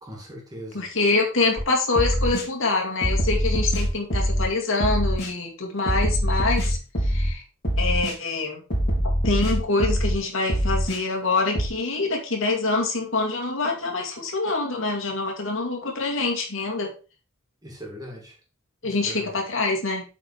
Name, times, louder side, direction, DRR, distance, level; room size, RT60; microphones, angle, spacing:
voice 1, 0.0-0.9 17.6-18.4 18.8-19.4, equal, 15° right, 2.4 m, -40 dB
voice 2, 0.7-6.8 7.1-7.4 7.8-8.6 9.0-16.9 18.8-20.0, left 3 dB, 75° left, 2.2 m, -25 dB
sound 1, 1.6-1.7 1.9-2.5 3.0-4.5 4.8-5.3 5.9-7.3 7.6-8.1 8.7-10.2 10.5-11.0 11.5-11.7, equal, 50° left, 3.8 m, -23 dB
8.3 x 4.6 x 4.7 m
head